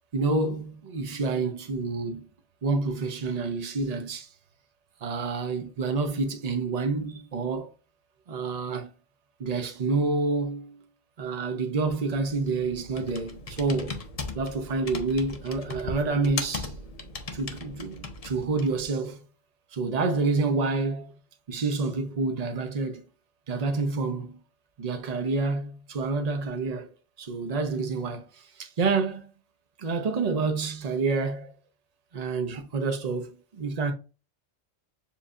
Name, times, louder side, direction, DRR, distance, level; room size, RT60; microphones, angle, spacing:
voice 1, 0.1-2.2 2.6-4.3 5.0-7.7 8.3-8.9 9.4-10.8 11.2-14.0 14.3-16.7 17.3-19.2 19.7-21.1 21.5-23.0 23.5-24.4 24.8-26.9 27.2-29.3 29.8-31.5 32.1-33.9, right 3 dB, 40° right, 0.7 m, -28 dB
Computer keyboard, 11.9-18.8, left 3 dB, 45° left, 0.5 m, -38 dB
7.2 x 2.7 x 2.4 m
omnidirectional pair, 1.4 m